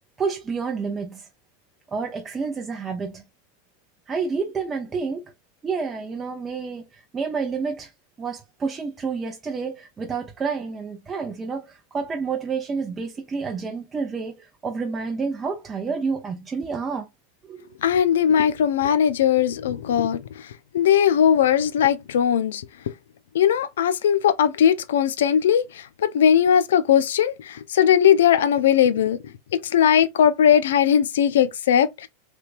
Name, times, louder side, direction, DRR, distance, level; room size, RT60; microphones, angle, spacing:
voice 1, 0.2-1.3 1.9-3.2 4.1-5.2 5.6-7.9 8.2-17.1 17.4-18.0, right 5 dB, 25° right, 0.6 m, -29 dB
voice 2, 17.8-20.2 20.7-22.7 23.3-29.2 29.5-32.1, left 9 dB, 80° left, 0.4 m, -19 dB
3.3 x 2.9 x 2.4 m
hypercardioid pair, 105°, 0 cm